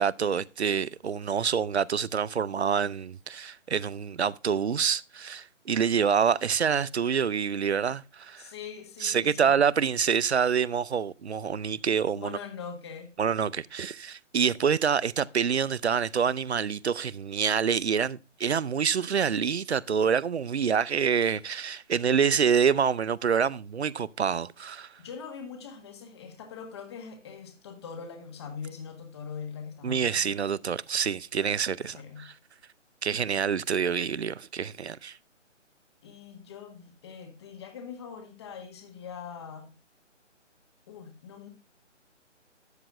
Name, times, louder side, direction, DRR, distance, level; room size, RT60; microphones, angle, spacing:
voice 1, 0.0-8.5 9.0-12.4 13.2-24.9 29.8-32.3 33.0-35.2, right 7 dB, 60° right, 0.5 m, -27 dB
voice 2, 8.4-9.6 12.1-13.1 25.0-30.3 31.8-32.3 36.0-39.7 40.9-41.5, left 6 dB, 20° left, 1.5 m, -42 dB
13.0 x 8.7 x 2.4 m
figure-of-eight pair, 145°, 37 cm